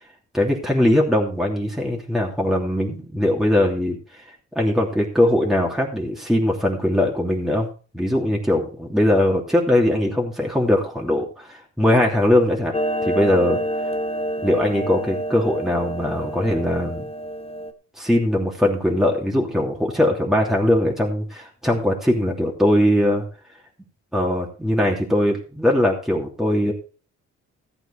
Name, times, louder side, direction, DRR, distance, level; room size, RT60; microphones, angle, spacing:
voice 1, 0.3-4.2 4.5-7.7 7.9-12.7 13.0-13.6 14.4-17.1 18.0-23.2 24.1-26.7, left 1 dB, ahead, -1 dB, 2.9 m, -20 dB
Clock, 12.7-17.7, right 1 dB, 20° left, 1.2 m, -27 dB
15.0 x 8.1 x 4.2 m, 0.36 s
cardioid pair, 90°, 30 cm